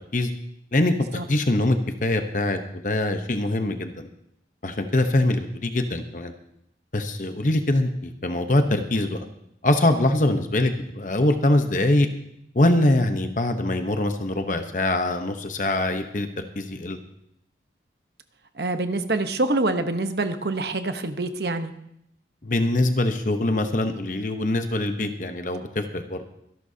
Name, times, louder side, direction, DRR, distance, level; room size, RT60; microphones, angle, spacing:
voice 1, 1.3-4.1 4.6-6.3 6.9-9.3 9.6-12.1 12.5-17.0 22.4-26.2, left 1 dB, 45° left, 7 dB, 0.9 m, -23 dB
voice 2, 18.6-21.7, right 2 dB, 65° right, 8 dB, 1.0 m, -25 dB
24.5 x 11.5 x 2.8 m, 0.75 s
head